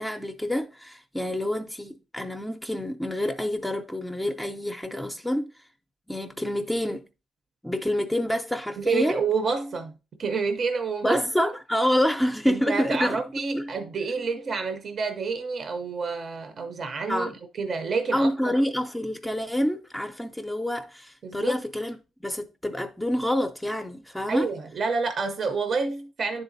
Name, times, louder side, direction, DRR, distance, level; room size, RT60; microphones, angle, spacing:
voice 1, 0.0-5.5 6.1-7.1 7.6-9.2 11.0-13.2 13.5-13.6 17.1-17.3 18.1-24.5, left 1 dB, 5° left, 0.5 m, -27 dB
voice 2, 8.8-11.5 12.5-17.3 17.6-18.6 21.2-21.6 24.3-26.4, right 4 dB, 50° right, 0.7 m, -28 dB
10.0 x 3.9 x 2.6 m
cardioid pair, 90°, 0 cm